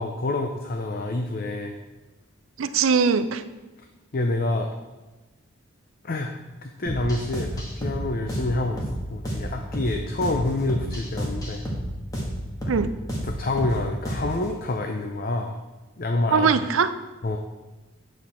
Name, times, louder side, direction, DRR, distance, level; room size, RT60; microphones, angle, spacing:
voice 1, 0.0-1.7 4.1-4.7 6.0-6.3 6.6-8.8 9.1-11.6 13.2-15.6 16.0-16.5 17.2-17.4, left 2 dB, 45° left, 4 dB, 0.5 m, -27 dB
voice 2, 2.6-3.4 12.7-12.9 16.3-16.9, right 6 dB, 70° right, 12 dB, 0.5 m, -21 dB
sound 1, 6.9-14.5, equal, 15° left, 1.4 m, -31 dB
8.3 x 7.3 x 4.3 m, 1.1 s
head